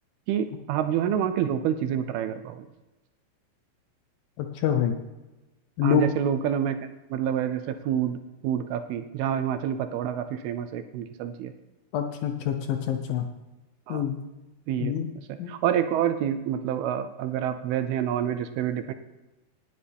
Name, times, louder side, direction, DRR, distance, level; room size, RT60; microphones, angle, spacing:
voice 1, 0.3-2.7 5.8-11.5 13.9-14.0 14.7-15.0 15.3-18.9, right 9 dB, 80° right, 10 dB, 2.4 m, -28 dB
voice 2, 4.4-4.9 5.8-6.1 11.9-13.3 13.9-14.2 14.8-15.1 15.4-15.5, left 9 dB, 75° left, 6 dB, 2.3 m, -26 dB
19.0 x 9.6 x 3.5 m, 1.1 s
omnidirectional pair, 4.7 m